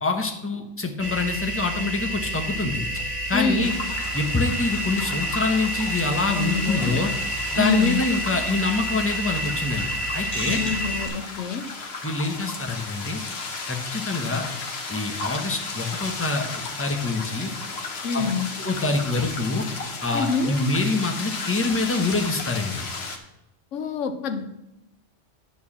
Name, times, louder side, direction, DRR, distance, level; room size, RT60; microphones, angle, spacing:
voice 1, 0.0-2.8 3.3-3.7 4.1-7.1 7.5-9.9 10.1-10.6 12.0-13.2 13.7-14.5 14.9-17.5 18.1-18.2 18.6-19.7 20.0-22.8, left 3 dB, 10° left, 3 dB, 1.0 m, -25 dB
sound 1, 1.0-11.1, right 1 dB, 25° right, 3.1 m, -29 dB
voice 2, 3.3-3.7 6.3-7.0 7.5-8.0 10.5-11.7 18.0-18.5 20.1-20.6 23.7-24.5, left 5 dB, 85° left, 10 dB, 1.1 m, -26 dB
sound 2, 3.6-23.2, left 4 dB, 60° left, 1.4 m, -34 dB
11.0 x 4.7 x 7.2 m, 0.93 s
omnidirectional pair, 1.2 m